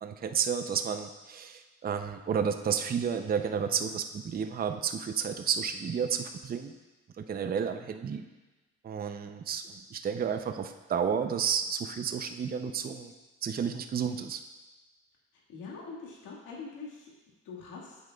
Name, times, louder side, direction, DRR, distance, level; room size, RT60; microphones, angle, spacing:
voice 1, 0.0-6.7 7.2-8.2 8.8-13.1 13.4-14.4, right 7 dB, 30° right, 7 dB, 0.5 m, -31 dB
voice 2, 15.5-17.1 17.5-18.0, left 4 dB, 90° left, -3 dB, 1.8 m, -43 dB
9.1 x 8.1 x 2.3 m, 1.2 s
cardioid pair, 90°, 30 cm